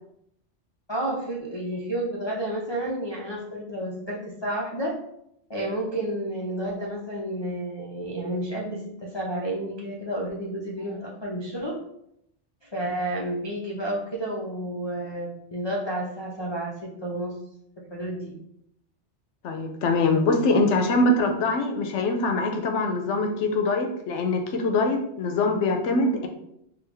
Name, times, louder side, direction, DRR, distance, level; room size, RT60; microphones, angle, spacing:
voice 1, 0.9-4.9 5.5-11.8 12.6-17.4 17.9-18.3, right 1 dB, 45° left, -3 dB, 0.3 m, -31 dB
voice 2, 19.4-26.3, left 2 dB, 80° left, 4 dB, 0.9 m, -23 dB
3.8 x 2.3 x 3.3 m, 0.76 s
omnidirectional pair, 1.2 m